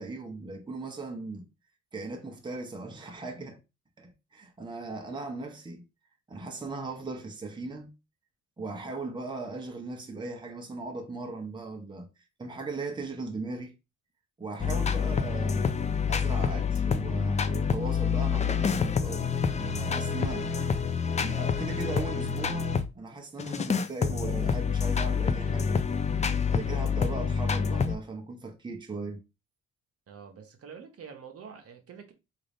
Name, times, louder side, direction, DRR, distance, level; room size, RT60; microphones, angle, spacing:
voice 1, 0.0-1.5 1.9-3.6 4.0-5.8 6.3-7.9 8.6-12.1 12.4-13.7 14.4-15.7 16.1-20.5 21.2-25.8 26.5-29.2, right 3 dB, 15° right, 0.8 m, -38 dB
sound 1, 14.6-22.9 23.4-27.9, left 6 dB, 25° left, 0.3 m, -27 dB
voice 2, 30.1-32.1, right 6 dB, 50° right, 0.8 m, -46 dB
3.7 x 2.5 x 3.3 m
cardioid pair, 90°, 30 cm